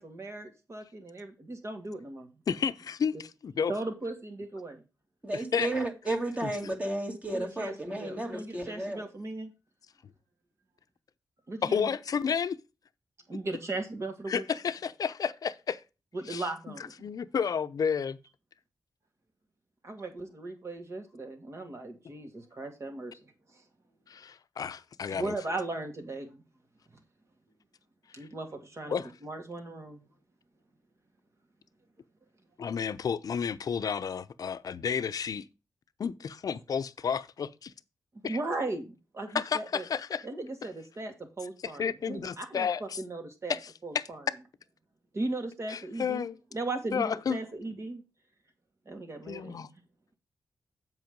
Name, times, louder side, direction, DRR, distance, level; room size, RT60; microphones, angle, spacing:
voice 1, 0.0-2.3 3.1-3.2 3.7-4.8 7.3-9.5 11.5-11.9 13.3-14.4 16.1-16.9 19.8-23.6 25.1-26.4 28.1-30.1 38.2-39.9 40.2-44.3 45.1-46.3 46.5-48.0 48.9-49.7, right 2 dB, 45° right, 2.3 m, -37 dB
voice 2, 2.5-3.7 5.3-5.7 6.4-6.5 11.6-12.6 14.3-15.8 16.3-16.4 17.0-18.2 24.1-25.3 28.9-29.1 32.6-35.4 36.0-37.7 38.2-38.4 39.3-40.3 41.8-42.8 43.5-43.6 43.9-44.0 45.7-46.4 46.9-47.4 49.3-49.7, left 7 dB, 65° left, 0.6 m, -31 dB
voice 3, 5.2-9.0, right 1 dB, 20° right, 2.4 m, -33 dB
7.9 x 5.5 x 5.2 m
cardioid pair, 75°, 7 cm